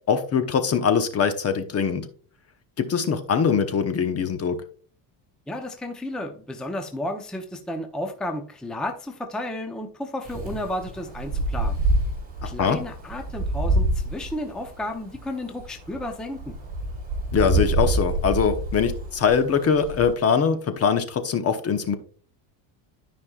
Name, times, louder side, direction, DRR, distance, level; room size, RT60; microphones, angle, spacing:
voice 1, 0.1-2.1 2.8-4.6 12.4-12.8 17.3-22.0, left 6 dB, 30° left, 8 dB, 0.9 m, -22 dB
voice 2, 5.5-11.8 12.4-16.5, left 1 dB, ahead, 4 dB, 0.7 m, -32 dB
Wind, 10.2-20.1, right 2 dB, 20° right, 3.7 m, -27 dB
13.0 x 5.3 x 2.4 m, 0.42 s
cardioid pair, 140°, 47 cm